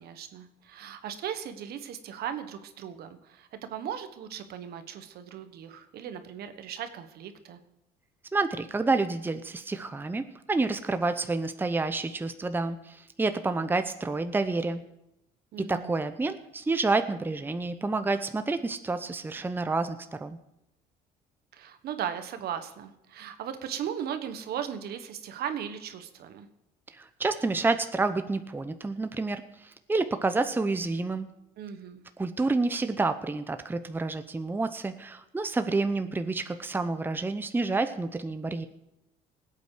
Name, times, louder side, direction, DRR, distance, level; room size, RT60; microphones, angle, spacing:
voice 1, 0.0-7.6 15.5-16.0 21.5-26.5 31.6-32.0, right 9 dB, 70° right, 9 dB, 1.4 m, -37 dB
voice 2, 8.3-14.8 15.6-20.4 26.9-31.3 32.2-38.7, right 3 dB, 10° right, 9 dB, 0.7 m, -29 dB
19.0 x 8.4 x 5.0 m, 0.87 s
cardioid pair, 110°, 17 cm